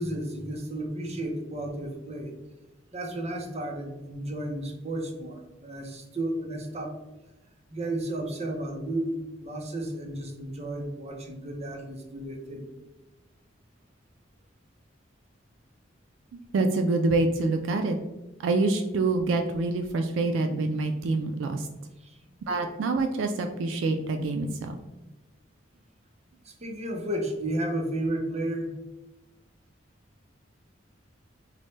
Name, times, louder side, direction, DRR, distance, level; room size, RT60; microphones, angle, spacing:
voice 1, 0.0-2.3 2.9-6.9 7.7-12.7 22.0-22.2 26.4-28.7, right 1 dB, 35° right, 2 dB, 0.6 m, -33 dB
voice 2, 16.5-18.0 18.4-21.7 22.5-24.8, right 3 dB, 75° right, 5 dB, 0.3 m, -26 dB
4.1 x 2.1 x 3.1 m, 1.0 s
head